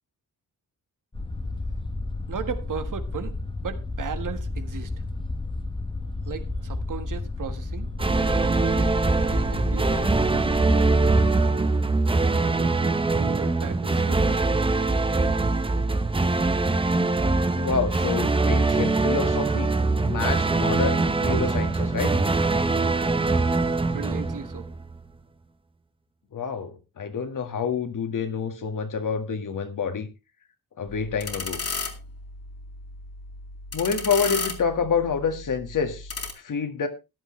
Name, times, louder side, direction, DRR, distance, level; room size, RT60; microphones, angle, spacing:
sound 1, 1.1-11.4, left 2 dB, 15° left, 0.8 m, -32 dB
voice 1, 2.3-3.3 3.6-4.9 6.3-7.9 8.4-10.9 11.5-11.7 12.4-14.4 23.8-24.6, right 7 dB, 60° right, 9 dB, 1.5 m, -36 dB
sound 2, 8.0-25.0, right 3 dB, 15° right, 0.8 m, -23 dB
voice 2, 17.5-19.7 20.0-22.1 26.3-30.1 30.8-31.6 33.7-36.9, left 6 dB, 60° left, 7 dB, 1.8 m, -28 dB
sound 3, 30.9-36.3, left 4 dB, 45° left, 2.3 m, -34 dB
14.5 x 11.0 x 3.2 m, 0.26 s
wide cardioid pair, 155°, 35 cm